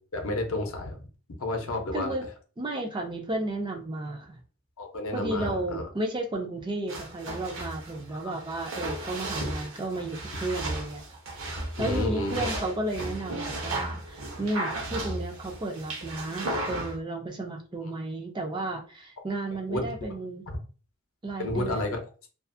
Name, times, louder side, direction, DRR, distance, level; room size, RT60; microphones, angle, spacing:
voice 1, 0.1-1.0 1.4-2.2 4.8-5.8 8.2-8.3 11.8-12.5 19.7-19.9 21.4-22.0, left 1 dB, 65° left, 3 dB, 0.6 m, -30 dB
voice 2, 1.9-2.3 2.6-4.4 5.1-11.0 11.8-20.5 21.2-21.8, right 2 dB, 20° right, 3 dB, 0.4 m, -33 dB
sound 1, 6.9-17.0, right 1 dB, 60° right, 0.8 m, -35 dB
2.5 x 2.4 x 2.5 m, 0.37 s
head